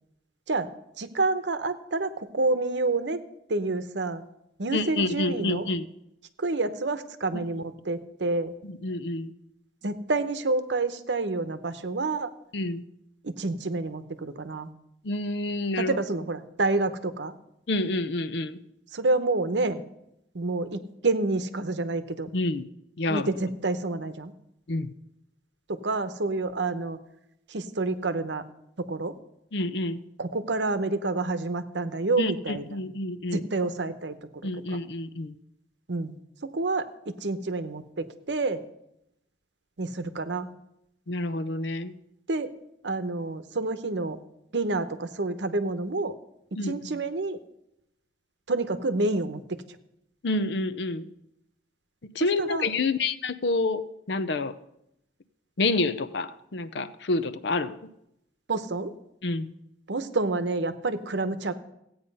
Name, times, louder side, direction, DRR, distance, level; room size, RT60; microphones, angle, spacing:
voice 1, 1.0-3.2 3.5-4.3 4.6-5.7 6.4-8.5 9.8-12.3 13.2-14.7 15.8-17.3 18.9-19.8 20.3-22.3 23.1-24.3 25.7-27.0 27.5-28.4 28.8-29.1 30.2-32.8 33.3-34.2 34.7-34.8 35.9-36.1 36.4-38.6 39.8-40.5 42.3-42.5 42.8-44.2 44.5-46.1 46.6-47.4 48.5-49.6 52.4-52.7 58.5-58.9 59.9-61.5, right 3 dB, 80° right, 11 dB, 0.9 m, -28 dB
voice 2, 4.7-5.9 7.3-7.5 8.6-9.3 12.5-12.8 15.0-16.0 17.7-18.6 22.3-22.7 23.0-23.3 24.7-24.9 29.5-30.0 32.2-33.4 34.4-35.3 41.1-41.9 46.6-47.0 50.2-51.1 52.1-54.6 55.6-57.8 59.2-59.5, left 2 dB, 70° left, 13 dB, 0.6 m, -28 dB
15.5 x 8.8 x 5.4 m, 0.82 s
head